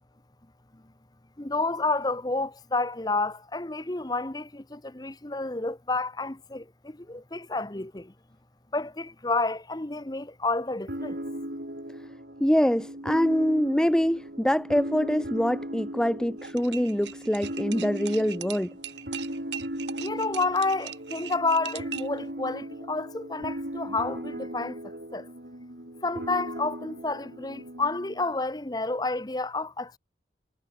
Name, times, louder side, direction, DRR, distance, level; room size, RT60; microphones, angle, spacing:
voice 1, 1.4-8.1 8.7-11.2 20.0-24.8 25.1-25.3 26.0-30.0, left 3 dB, 20° left, 1.0 m, -30 dB
sound 1, 10.9-28.3, right 1 dB, 60° right, 4.4 m, -37 dB
voice 2, 12.4-18.7, equal, 5° left, 0.4 m, -25 dB
sound 2, 16.4-22.2, right 10 dB, 80° right, 1.2 m, -40 dB
head